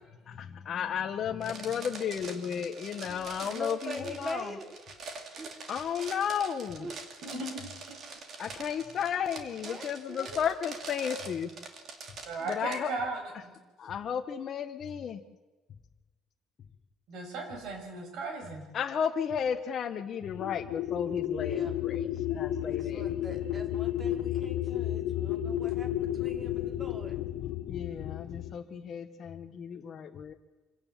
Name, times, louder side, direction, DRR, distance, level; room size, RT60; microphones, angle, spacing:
voice 1, 0.3-4.6 5.7-6.9 8.4-11.5 12.4-13.0 13.8-15.2 18.7-23.1 27.7-30.3, left 8 dB, 35° left, 5 dB, 1.1 m, -33 dB
sound 1, 1.4-12.8, right 4 dB, 40° right, 2.7 m, -44 dB
voice 2, 3.1-4.8 5.4-5.5 6.8-7.0 9.6-10.6 12.4-12.5 21.4-21.7 22.7-27.2, equal, 15° right, 4 dB, 2.7 m, -43 dB
voice 3, 7.2-8.0 12.2-13.5 17.1-18.6 23.3-23.4, right 3 dB, 60° right, 3 dB, 6.3 m, -37 dB
sound 2, 20.2-28.6, left 12 dB, 80° left, 1.0 m, -32 dB
25.5 x 17.5 x 7.4 m, 1.2 s
cardioid pair, 170°, 0 cm